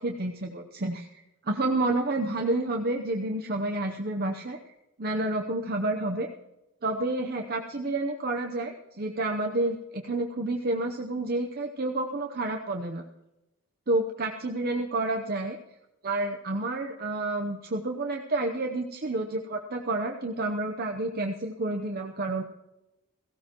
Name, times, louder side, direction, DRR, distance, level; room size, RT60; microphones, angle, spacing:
voice 1, 0.0-4.6 5.0-6.3 6.8-13.0 13.9-15.6 16.0-22.4, right 2 dB, 45° right, 2 dB, 0.8 m, -29 dB
17.5 x 16.0 x 3.0 m, 0.94 s
head